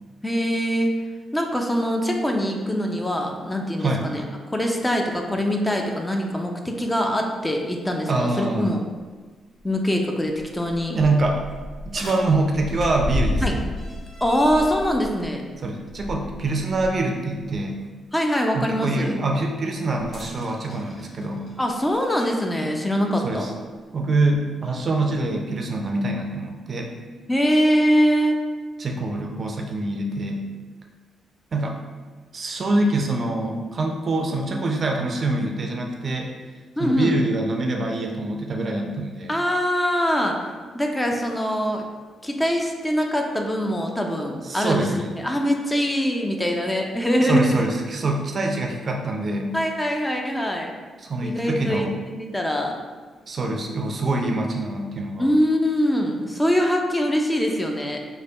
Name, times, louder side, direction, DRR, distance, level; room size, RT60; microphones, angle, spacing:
voice 1, 0.2-0.9 1.3-4.2 4.5-8.8 9.6-11.0 13.4-13.6 14.2-15.5 18.1-19.2 21.6-23.5 27.3-28.4 36.8-37.2 39.3-40.4 40.7-41.9 42.2-47.7 49.5-50.7 51.2-52.7 55.2-58.0, equal, 15° left, 2 dB, 0.6 m, -23 dB
voice 2, 8.1-8.8 10.9-11.4 11.9-13.7 15.6-17.8 18.5-21.5 23.2-23.5 23.9-26.9 28.8-30.5 31.5-31.8 32.3-36.3 36.8-39.3 44.4-45.1 47.2-49.6 51.0-51.9 53.3-55.3, right 2 dB, 50° right, 2 dB, 0.5 m, -25 dB
sound 1, 9.6-9.7 10.3-17.0 17.4-17.6 20.0-22.4 23.4-23.5 24.3-24.4, left 1 dB, 50° left, 1.1 m, -32 dB
3.3 x 2.2 x 3.8 m, 1.4 s
hypercardioid pair, 45°, 0 cm